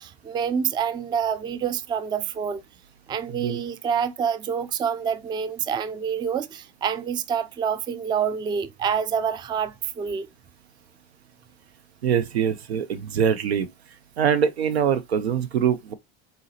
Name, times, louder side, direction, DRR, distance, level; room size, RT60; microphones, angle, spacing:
voice 1, 0.0-2.6 3.1-10.3, right 7 dB, 15° right, 0.3 m, -27 dB
voice 2, 12.0-13.7 14.2-15.9, right 8 dB, 85° right, 0.7 m, -23 dB
4.0 x 3.8 x 2.7 m
hypercardioid pair, 80°, 31 cm